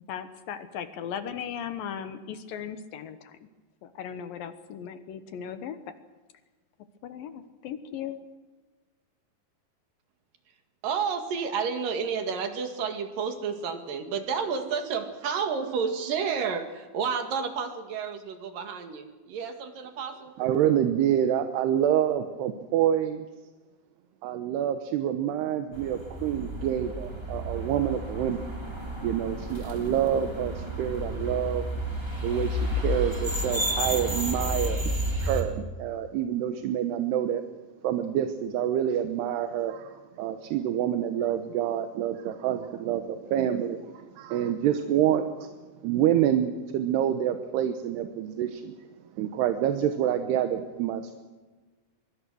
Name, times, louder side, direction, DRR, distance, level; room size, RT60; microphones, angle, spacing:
voice 1, 0.0-3.4 3.8-5.9 7.0-8.2, left 8 dB, 70° left, 10 dB, 2.4 m, -37 dB
voice 2, 10.8-20.3, right 6 dB, 55° right, 6 dB, 3.5 m, -31 dB
voice 3, 20.4-23.3 24.2-28.5 29.0-31.6 32.2-34.9 35.2-37.4 37.8-45.5 45.8-48.7 49.2-51.2, right 10 dB, 75° right, 7 dB, 3.0 m, -27 dB
sound 1, 25.7-35.4, equal, 5° right, 3.0 m, -31 dB
23.5 x 23.5 x 6.3 m, 1.3 s
omnidirectional pair, 4.9 m